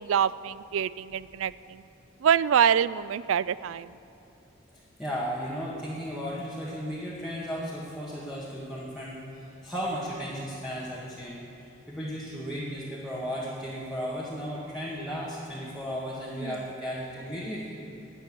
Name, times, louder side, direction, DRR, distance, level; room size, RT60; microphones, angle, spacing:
voice 1, 0.0-1.8 2.2-4.0 16.4-16.6, right 8 dB, 85° right, 19 dB, 0.3 m, -25 dB
voice 2, 5.0-9.2 9.6-17.7, equal, ahead, -7 dB, 1.6 m, -35 dB
13.5 x 9.1 x 7.9 m, 3.0 s
head